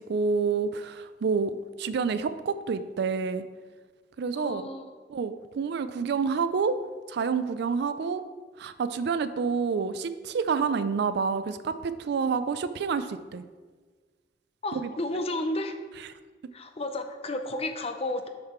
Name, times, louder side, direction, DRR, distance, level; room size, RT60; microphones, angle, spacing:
voice 1, 0.0-3.4 4.2-4.7 5.1-6.8 7.1-8.2 8.6-13.4 14.7-14.9, right 5 dB, 65° right, 12 dB, 0.4 m, -28 dB
voice 2, 4.3-4.9 14.6-15.7 16.5-18.3, left 1 dB, 35° left, 7 dB, 0.6 m, -32 dB
6.5 x 5.8 x 4.3 m, 1.4 s
head